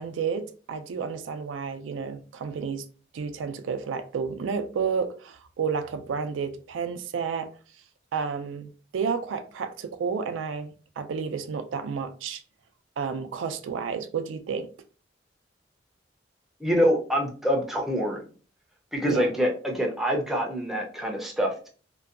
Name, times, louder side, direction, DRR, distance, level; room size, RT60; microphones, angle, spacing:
voice 1, 0.0-2.8 3.1-7.5 8.1-12.4 13.0-14.7 19.0-19.3, right 6 dB, 85° right, 0.3 m, -31 dB
voice 2, 16.6-18.2 18.9-21.7, equal, ahead, 0.4 m, -25 dB
2.6 x 2.2 x 2.3 m
head